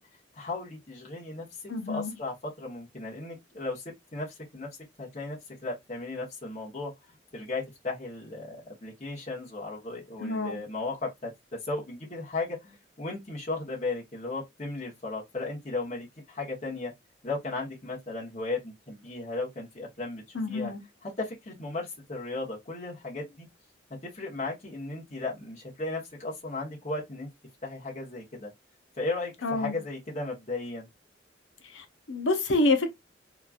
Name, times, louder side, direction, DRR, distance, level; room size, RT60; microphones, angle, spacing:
voice 1, 0.3-1.4 1.9-3.8 4.1-4.7 5.0-6.9 7.3-16.9 17.2-20.7 21.0-23.5 24.0-27.3 27.6-28.5 29.0-30.9, left 3 dB, 35° left, 1.0 m, -35 dB
voice 2, 1.7-2.1 10.2-10.6 20.3-20.8 29.4-29.8 31.7-32.9, left 2 dB, 90° left, 0.7 m, -27 dB
3.0 x 2.4 x 2.3 m
head